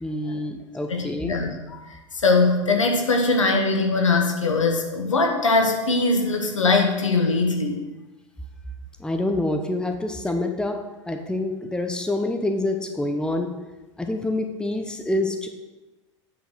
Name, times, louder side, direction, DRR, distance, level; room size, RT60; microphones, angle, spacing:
voice 1, 0.0-1.3 9.0-10.8 11.1-13.5 14.0-15.5, left 2 dB, 5° left, 5 dB, 0.9 m, -26 dB
voice 2, 0.9-2.0 2.2-7.8, left 3 dB, 80° left, 3 dB, 1.3 m, -21 dB
9.0 x 5.1 x 6.4 m, 1.1 s
figure-of-eight pair, 80°, 16 cm